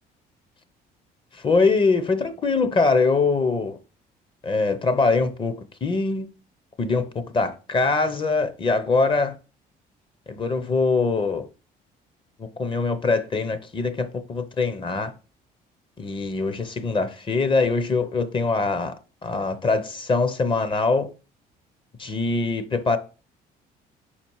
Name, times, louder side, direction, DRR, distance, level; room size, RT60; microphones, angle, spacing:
voice 1, 1.3-3.8 4.4-5.5 5.8-6.3 6.8-9.4 10.3-11.5 12.4-15.1 16.0-19.0 19.2-21.1 22.0-23.0, left 3 dB, 30° left, 0.7 m, -23 dB
5.1 x 4.3 x 4.6 m
cardioid pair, 110°, 17 cm